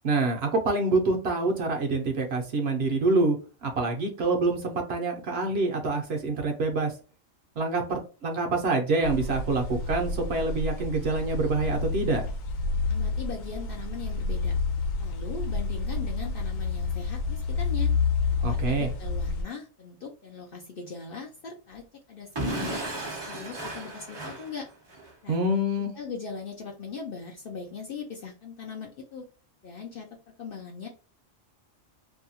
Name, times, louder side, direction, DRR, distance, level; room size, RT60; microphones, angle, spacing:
voice 1, 0.0-6.9 7.6-12.3 18.4-18.9 25.3-25.9, right 2 dB, 60° right, 3 dB, 0.8 m, -26 dB
sound 1, 9.0-19.4, left 4 dB, 85° left, 1.1 m, -29 dB
voice 2, 12.9-14.6 15.0-17.9 18.4-22.9 23.2-24.7 25.2-25.4 25.9-29.3 29.6-30.9, left 5 dB, 60° left, 1 dB, 0.6 m, -40 dB
Explosion / Shatter, 22.4-25.1, right 1 dB, 30° right, 0.5 m, -34 dB
2.7 x 2.2 x 2.7 m, 0.37 s
omnidirectional pair, 1.3 m